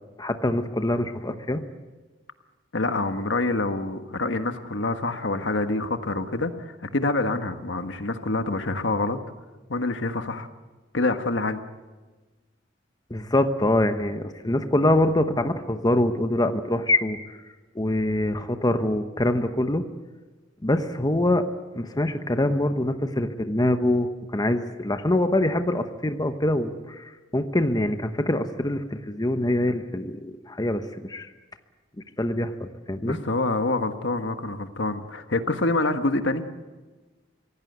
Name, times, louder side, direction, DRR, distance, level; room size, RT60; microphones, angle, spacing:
voice 1, 0.2-1.6 13.1-17.2 17.7-19.8 20.6-21.5 21.7-31.3 32.2-33.2, left 1 dB, 20° left, 8 dB, 1.0 m, -24 dB
voice 2, 2.7-9.2 9.7-10.5 10.9-11.6 33.0-36.4, left 2 dB, 70° left, 8 dB, 1.5 m, -26 dB
25.5 x 17.0 x 8.1 m, 1.3 s
head